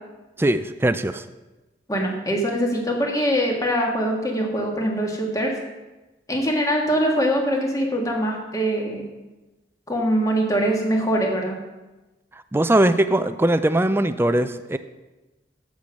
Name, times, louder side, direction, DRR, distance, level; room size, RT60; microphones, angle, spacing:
voice 1, 0.4-1.2 12.5-14.8, right 1 dB, 15° right, 11 dB, 0.4 m, -20 dB
voice 2, 1.9-5.5 6.3-9.0 9.9-11.6, equal, 20° left, 0 dB, 1.6 m, -23 dB
7.7 x 6.9 x 6.5 m, 1.1 s
head